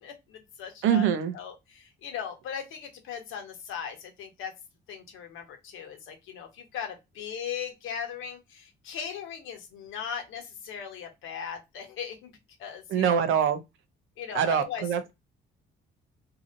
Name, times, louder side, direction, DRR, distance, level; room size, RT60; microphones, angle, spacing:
voice 1, 0.0-1.1 1.3-4.5 4.9-12.3 12.6-13.3 14.2-14.8, left 8 dB, 85° left, 1.0 m, -38 dB
voice 2, 0.8-1.3 12.9-13.6 14.3-15.1, right 8 dB, 90° right, 0.6 m, -24 dB
2.8 x 2.7 x 2.5 m
cardioid pair, 90°, 20 cm